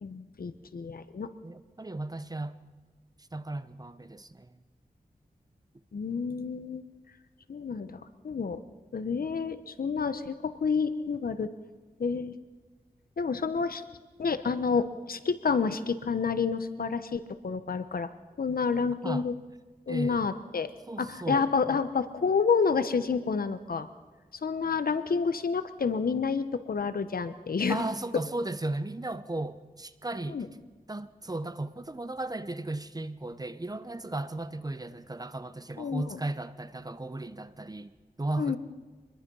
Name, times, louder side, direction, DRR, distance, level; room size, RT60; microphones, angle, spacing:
voice 1, 0.0-1.3 5.9-6.8 7.5-8.6 8.9-11.5 12.0-12.4 13.2-13.8 14.2-18.1 18.4-19.3 19.9-20.7 21.0-23.9 24.4-27.8 30.3-30.5 35.8-36.1 38.4-38.6, left 5 dB, 75° left, 1.2 m, -29 dB
voice 2, 1.4-2.6 3.2-4.6 19.0-19.3 19.9-20.3 20.9-21.8 27.7-30.4 30.9-37.9 38.2-38.6, right 2 dB, 25° right, 1.0 m, -35 dB
25.5 x 21.0 x 5.6 m
wide cardioid pair, 70°, 15 cm